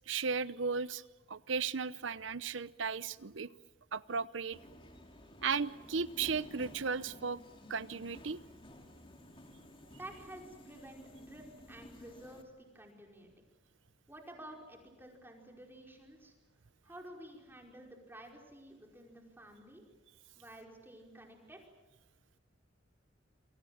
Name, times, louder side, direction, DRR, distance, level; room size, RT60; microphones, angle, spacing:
voice 1, 0.1-1.0 1.3-3.5 3.9-4.6 5.4-7.4 7.7-8.4, right 5 dB, 80° right, 16 dB, 0.8 m, -35 dB
Subway metro underground, 4.5-12.4, left 1 dB, 30° left, 2.8 m, -54 dB
voice 2, 10.0-13.3 14.1-16.3 16.8-19.8 20.3-21.6, right 1 dB, 10° right, 1 dB, 5.0 m, -52 dB
27.5 x 24.0 x 7.3 m, 1.1 s
head